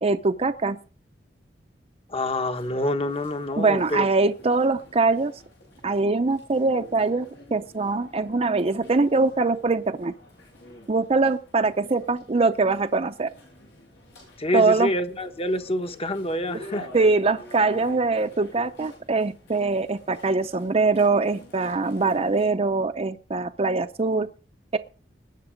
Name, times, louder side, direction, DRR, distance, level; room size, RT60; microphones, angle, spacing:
voice 1, 0.0-0.8 3.6-5.3 5.8-10.1 10.9-13.3 14.5-14.9 16.9-24.3 24.7-24.8, right 3 dB, 35° right, 6 dB, 0.6 m, -23 dB
voice 2, 2.1-4.1 14.4-16.9, left 1 dB, 35° left, 8 dB, 1.2 m, -27 dB
sound 1, 2.5-22.5, left 1 dB, 90° left, 7.2 m, -48 dB
20.0 x 8.1 x 5.1 m, 0.40 s
head